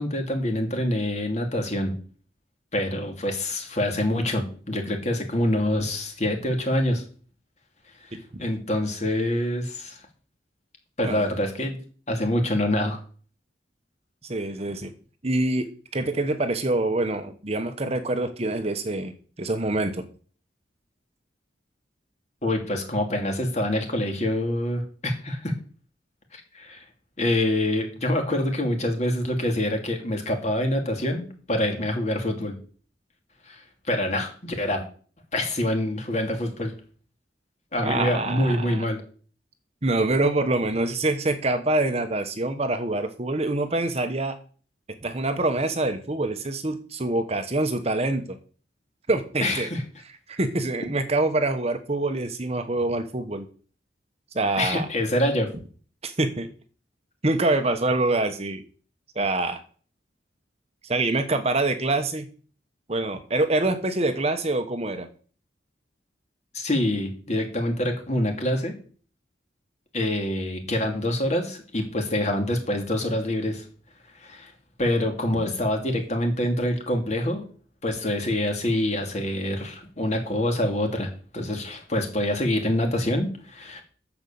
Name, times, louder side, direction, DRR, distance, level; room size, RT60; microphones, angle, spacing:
voice 1, 0.0-1.9 2.7-7.0 8.4-10.0 11.0-11.8 12.1-13.0 22.4-25.5 26.3-26.8 27.2-32.6 33.5-34.8 35.3-36.7 37.7-39.0 49.4-49.8 54.6-55.5 66.5-68.7 69.9-73.6 74.2-74.5 74.8-77.4 77.8-83.8, left 1 dB, 35° left, 4 dB, 2.6 m, -26 dB
voice 2, 14.2-14.9 15.2-15.7 15.9-19.1 19.4-20.1 37.8-38.8 39.8-44.4 45.0-48.4 49.1-49.7 50.3-53.5 54.3-54.9 56.0-56.5 57.2-58.6 59.1-59.6 60.8-62.3 62.9-65.1, right 2 dB, 35° right, 8 dB, 1.0 m, -25 dB
10.0 x 7.2 x 7.0 m, 0.43 s
head